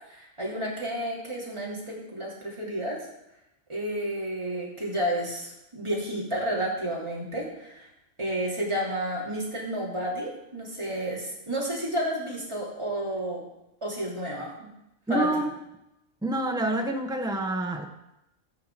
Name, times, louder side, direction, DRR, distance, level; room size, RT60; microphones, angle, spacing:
voice 1, 0.1-3.1 3.7-7.9 8.2-13.4 13.8-14.7 15.1-15.4, right 1 dB, 20° right, -4 dB, 3.1 m, -31 dB
voice 2, 15.1-15.5 16.2-17.9, right 1 dB, 5° right, 3 dB, 0.9 m, -27 dB
13.5 x 4.8 x 7.5 m, 0.87 s
omnidirectional pair, 1.4 m